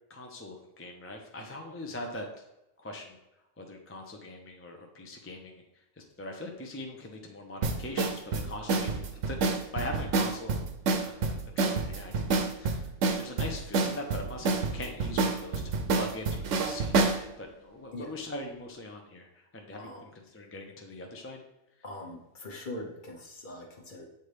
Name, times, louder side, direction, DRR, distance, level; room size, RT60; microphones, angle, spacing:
voice 1, 0.1-2.3 2.8-3.2 3.6-5.6 6.0-10.7 11.0-12.8 13.2-15.6 15.9-19.3 19.5-19.9 20.3-21.4, left 1 dB, 15° left, 2 dB, 0.5 m, -41 dB
sound 1, 7.6-17.2, right 3 dB, 80° right, 1.0 m, -28 dB
voice 2, 21.8-24.1, left 1 dB, 45° left, 1 dB, 1.0 m, -42 dB
8.0 x 4.1 x 3.3 m, 0.92 s
omnidirectional pair, 1.3 m